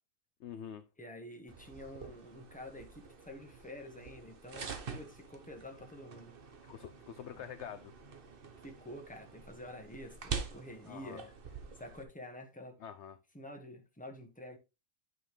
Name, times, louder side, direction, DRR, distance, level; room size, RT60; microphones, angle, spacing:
voice 1, 0.4-0.8 6.6-7.9 10.9-11.2 12.8-13.2, left 8 dB, 65° left, 0.8 m, -46 dB
voice 2, 1.0-6.4 7.3-7.5 8.6-11.3 11.8-12.8 13.3-14.6, left 1 dB, 5° left, 1.3 m, -48 dB
sound 1, 1.5-12.0, right 5 dB, 45° right, 1.0 m, -46 dB
9.4 x 5.6 x 3.2 m
omnidirectional pair, 1.5 m